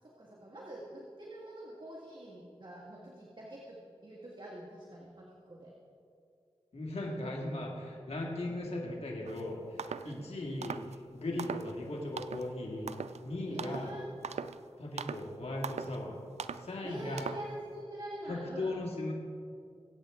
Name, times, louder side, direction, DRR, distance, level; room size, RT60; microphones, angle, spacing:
voice 1, 0.0-5.7 6.9-7.2 8.4-8.6 10.0-10.3 11.3-11.5 13.5-14.1 16.8-18.8, right 1 dB, 45° right, -3 dB, 2.1 m, -45 dB
voice 2, 6.7-12.9 13.2-13.9 14.8-16.2 16.5-17.2 18.3-19.1, left 1 dB, 70° left, -2 dB, 2.3 m, -38 dB
sound 1, 9.2-9.4 9.8-10.1 10.6-11.0 11.4-11.8 12.2-12.5 12.9-13.2 13.6-13.9 14.2-14.6 15.0-15.3 15.6-16.0 16.4-16.7 17.2-17.5, right 6 dB, 80° right, 0.4 m, -40 dB
22.5 x 8.6 x 3.9 m, 2.4 s
cardioid pair, 45°, 11 cm